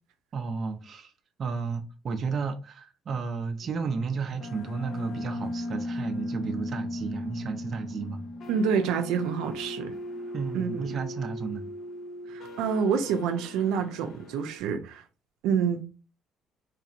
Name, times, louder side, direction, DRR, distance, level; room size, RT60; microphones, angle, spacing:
voice 1, 0.3-1.1 1.4-8.2 10.3-11.6, right 5 dB, 35° right, 0.5 m, -33 dB
sound 1, 3.6-14.6, left 1 dB, 45° left, 0.5 m, -37 dB
voice 2, 8.5-9.9 10.5-10.9 12.3-15.0 15.4-15.9, right 6 dB, 85° right, 0.5 m, -27 dB
4.0 x 2.8 x 2.5 m
cardioid pair, 155°, 0 cm